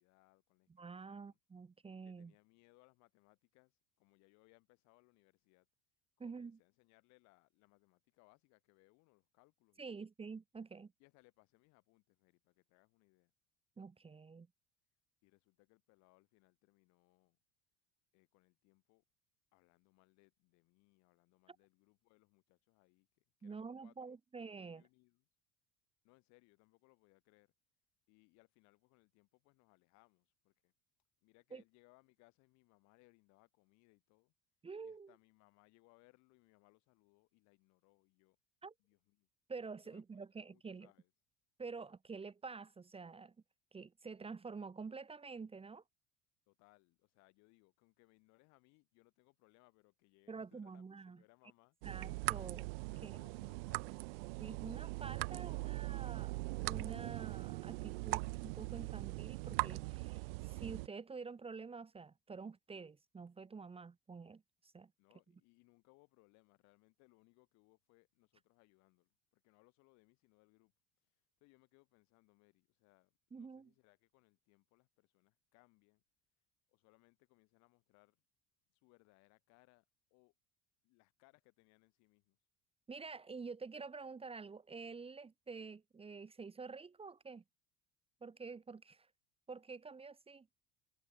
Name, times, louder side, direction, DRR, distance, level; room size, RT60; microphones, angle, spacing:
voice 1, 0.0-1.4 2.0-5.7 6.2-10.0 11.0-13.3 15.2-17.4 18.1-19.0 19.5-24.1 24.6-25.3 26.0-27.5 28.1-30.7 31.2-34.3 34.8-38.4 38.8-39.3 39.8-40.0 40.4-41.1 46.5-51.8 52.8-54.1 65.0-70.7 71.0-76.0 76.7-78.2 78.7-79.9 80.1-80.3 80.8-82.4, left 25 dB, 70° left, 3.4 m, -70 dB
voice 2, 0.8-2.3 6.2-6.6 9.8-10.9 13.8-14.5 23.4-24.8 31.5-31.6 34.6-35.1 38.6-38.7 39.5-40.9 41.6-43.3 43.7-45.8 50.3-51.2 51.8-52.7 53.0-53.1 54.4-64.9 73.3-73.7 82.9-87.4 88.2-89.1 89.5-90.5, right 4 dB, 20° right, 1.1 m, -48 dB
sound 1, 51.8-60.9, right 25 dB, 80° right, 0.6 m, -41 dB
supercardioid pair, 85°, 29 cm